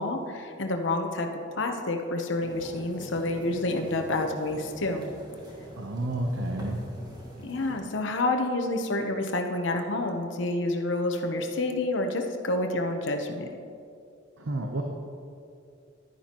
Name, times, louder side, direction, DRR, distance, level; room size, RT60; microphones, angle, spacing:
voice 1, 0.0-5.1 7.4-13.5, left 2 dB, 70° left, 4 dB, 0.9 m, -29 dB
sound 1, 2.4-7.8, equal, 20° right, 1.5 m, -44 dB
voice 2, 5.8-6.8 14.4-14.8, right 1 dB, 85° right, 2 dB, 0.7 m, -30 dB
11.0 x 10.0 x 3.0 m, 2.5 s
head